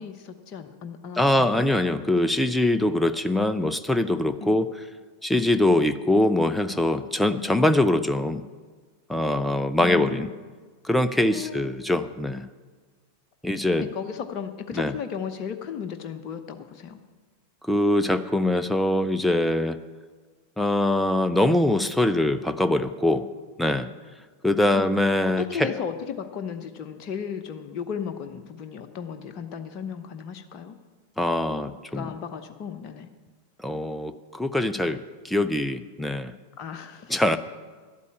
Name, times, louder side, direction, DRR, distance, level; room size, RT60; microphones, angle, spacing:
voice 1, 0.0-1.6 4.4-4.6 9.8-10.3 11.3-11.7 13.8-17.0 24.7-24.9 25.2-30.7 31.9-33.1 36.6-37.4, left 7 dB, 35° left, 6 dB, 0.9 m, -35 dB
voice 2, 1.2-4.7 5.2-8.4 9.1-10.3 10.8-12.5 13.4-13.9 14.7-14.9 17.6-19.8 20.6-23.3 23.6-23.9 24.4-25.7 31.2-32.1 33.6-36.3 37.1-37.4, left 1 dB, 5° left, 10 dB, 0.5 m, -23 dB
12.0 x 8.4 x 8.6 m, 1.4 s
figure-of-eight pair, 90°, 0 cm